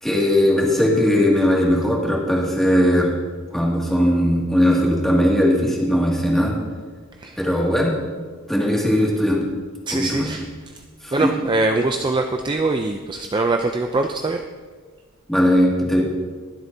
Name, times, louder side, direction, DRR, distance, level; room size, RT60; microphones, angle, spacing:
voice 1, 0.0-3.1 3.5-6.5 7.4-7.9 8.5-9.4 9.9-10.3 11.0-11.3 15.3-16.0, equal, ahead, -3 dB, 2.2 m, -18 dB
voice 2, 9.9-10.5 11.1-14.4, right 2 dB, 20° right, 4 dB, 0.4 m, -22 dB
22.0 x 7.9 x 2.8 m, 1.4 s
head